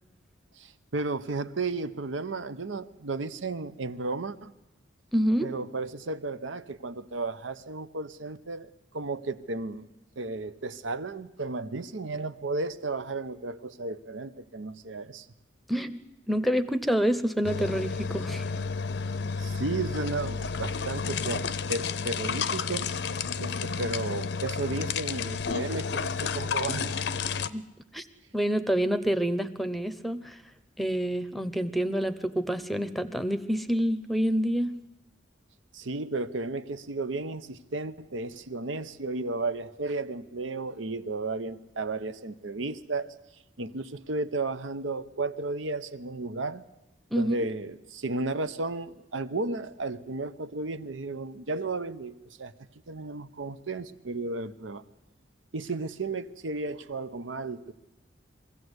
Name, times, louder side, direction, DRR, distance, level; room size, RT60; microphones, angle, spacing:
voice 1, 0.6-4.5 5.4-9.9 10.2-15.3 19.2-27.1 35.7-43.1 43.6-46.6 47.1-52.5 52.9-54.8 55.5-57.7, right 3 dB, 90° right, 0.8 m, -34 dB
voice 2, 5.1-5.5 15.7-16.0 16.3-18.5 27.4-27.6 27.9-28.1 28.3-30.4 30.8-34.8 47.1-47.5, equal, ahead, 0.7 m, -27 dB
sound 1, 17.4-27.5, left 5 dB, 60° left, 0.6 m, -31 dB
22.5 x 16.0 x 8.0 m
head